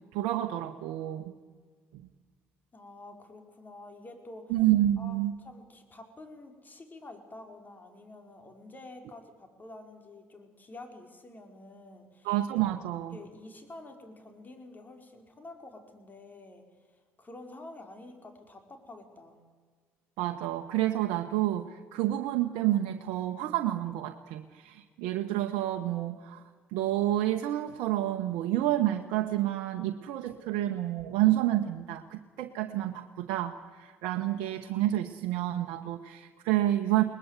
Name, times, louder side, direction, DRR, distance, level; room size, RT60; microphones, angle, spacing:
voice 1, 0.1-1.2 4.5-5.3 12.2-13.2 20.2-26.4 26.7-37.0, right 14 dB, 80° right, 5 dB, 1.0 m, -29 dB
voice 2, 2.7-4.6 5.0-12.3 13.1-19.4, left 2 dB, 30° left, 5 dB, 4.9 m, -48 dB
21.0 x 20.5 x 8.3 m, 1.6 s
supercardioid pair, 65°, 6 cm